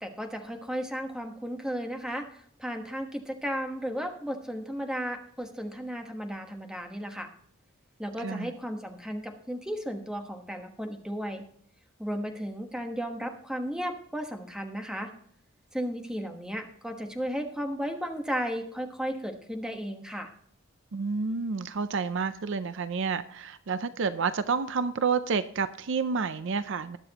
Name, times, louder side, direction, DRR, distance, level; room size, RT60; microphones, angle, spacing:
voice 1, 0.0-7.3 8.0-11.4 12.0-15.1 15.7-20.3, equal, 5° right, 4 dB, 1.2 m, -34 dB
voice 2, 8.2-8.5 20.9-27.0, right 5 dB, 60° right, 13 dB, 0.5 m, -29 dB
20.5 x 6.9 x 2.9 m, 0.63 s
head